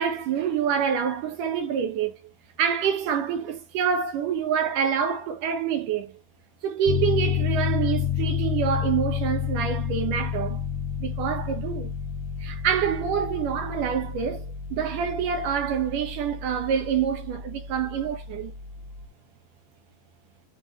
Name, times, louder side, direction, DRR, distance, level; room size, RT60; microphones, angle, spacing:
voice 1, 0.0-2.2 2.6-6.2 6.6-10.6 11.0-11.9 12.4-18.5, right 8 dB, 70° right, 2.4 m, -26 dB
Piano, 6.9-19.1, left 8 dB, 80° left, 2.1 m, -30 dB
9.3 x 3.4 x 3.0 m
omnidirectional pair, 4.4 m